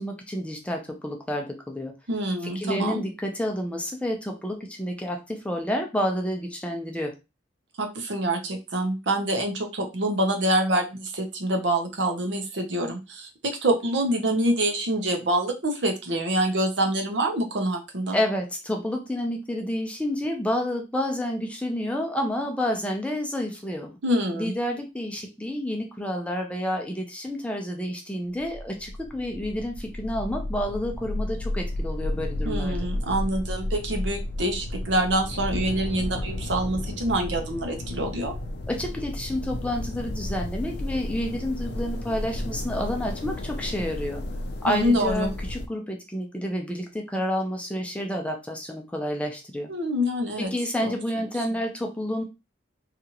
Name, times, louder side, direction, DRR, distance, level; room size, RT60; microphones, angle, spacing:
voice 1, 0.0-1.9 2.4-7.1 18.1-24.0 24.3-32.8 38.7-44.2 44.6-49.7 50.4-52.2, left 1 dB, 5° left, 2 dB, 0.5 m, -29 dB
voice 2, 2.1-3.0 7.8-18.2 24.0-24.5 32.4-38.3 44.7-45.3 49.7-50.5 50.8-50.9, right 1 dB, 75° right, 4 dB, 0.7 m, -26 dB
sound 1, 28.2-45.7, left 1 dB, 65° left, 0.4 m, -32 dB
2.8 x 2.4 x 2.8 m, 0.26 s
head